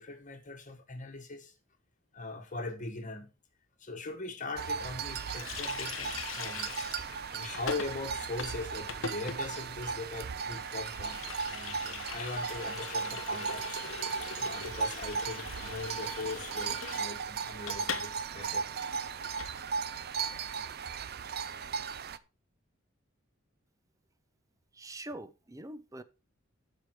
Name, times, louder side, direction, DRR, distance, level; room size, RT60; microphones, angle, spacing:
voice 1, 0.0-1.5 2.1-3.3 3.8-18.7, left 3 dB, 40° left, 1.5 m, -41 dB
sound 1, 4.6-22.2, right 6 dB, 50° right, 0.5 m, -37 dB
Water tap faucet, 5.3-18.1 18.4-18.5 18.8-19.5, left 6 dB, 70° left, 1.0 m, -42 dB
voice 2, 24.7-26.0, right 1 dB, 15° right, 0.8 m, -44 dB
12.5 x 5.3 x 4.6 m
head